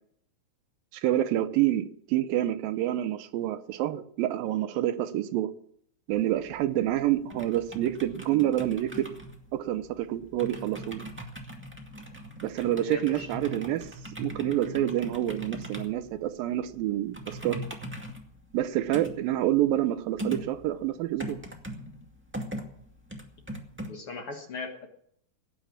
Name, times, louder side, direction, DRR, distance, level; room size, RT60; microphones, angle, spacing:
voice 1, 0.9-5.5 6.1-9.1 9.5-11.0 12.4-13.9 14.2-17.6 18.5-21.4, right 13 dB, 85° right, 12 dB, 2.6 m, -28 dB
sound 1, 6.1-23.9, right 1 dB, 5° right, 1.0 m, -41 dB
voice 2, 12.8-13.3 23.9-24.9, left 3 dB, 50° left, 3 dB, 1.9 m, -37 dB
17.0 x 9.1 x 7.3 m, 0.68 s
omnidirectional pair, 4.0 m